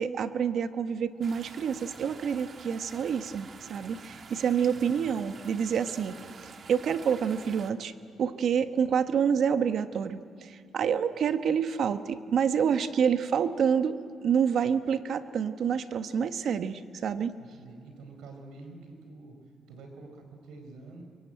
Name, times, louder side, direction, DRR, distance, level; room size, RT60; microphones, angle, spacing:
voice 1, 0.0-6.2 6.4-7.9 8.2-17.3, right 7 dB, 65° right, 10 dB, 1.2 m, -28 dB
sound 1, 1.2-7.7, right 5 dB, 45° right, 1.5 m, -48 dB
voice 2, 4.9-5.2 17.4-19.4 19.7-21.0, right 3 dB, 85° right, 4 dB, 4.5 m, -47 dB
25.5 x 22.5 x 9.1 m, 2.4 s
cardioid pair, 90°, 0 cm